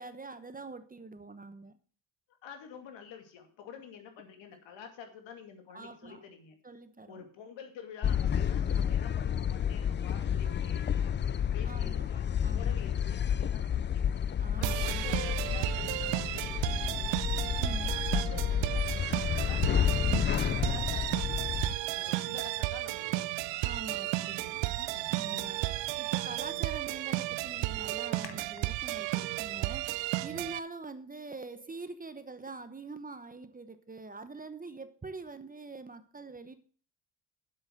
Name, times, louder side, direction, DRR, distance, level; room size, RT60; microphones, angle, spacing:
voice 1, 0.0-1.7 5.7-6.2 6.6-7.3 11.6-12.1 12.4-12.8 14.4-15.0 17.6-18.0 20.4-20.7 23.6-24.6 25.1-36.6, right 3 dB, 20° right, 0.9 m, -45 dB
voice 2, 2.4-6.6 7.1-11.1 11.5-12.2 12.5-14.2 14.5-17.4 17.8-19.9 20.3-21.3 21.7-23.3, left 7 dB, 80° left, 2.5 m, -49 dB
sound 1, 8.0-21.8, left 9 dB, 25° left, 0.4 m, -30 dB
sound 2, 14.6-30.6, right 17 dB, 75° right, 0.6 m, -33 dB
sound 3, 23.9-25.7 26.0-27.0 27.4-27.5 28.2-28.8, left 8 dB, 65° left, 1.4 m, -51 dB
8.0 x 7.6 x 6.4 m
cardioid pair, 90°, 44 cm